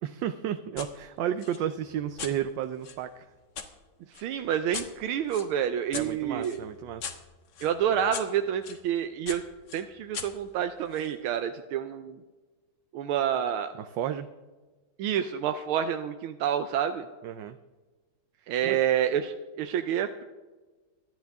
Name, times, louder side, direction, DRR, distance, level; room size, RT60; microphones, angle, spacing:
voice 1, 0.0-3.3 5.9-7.1 13.7-14.3 17.2-17.6 18.4-18.8, right 10 dB, 70° right, 9 dB, 1.3 m, -33 dB
sound 1, 0.8-0.9 1.4-3.7 4.1-8.8 9.3-11.1, left 6 dB, 60° left, 1.8 m, -41 dB
voice 2, 4.1-6.6 7.6-9.4 9.7-12.2 12.9-13.7 15.0-17.1 18.5-20.2, right 9 dB, 90° right, 8 dB, 1.6 m, -28 dB
25.0 x 10.5 x 3.5 m, 1.2 s
omnidirectional pair, 2.3 m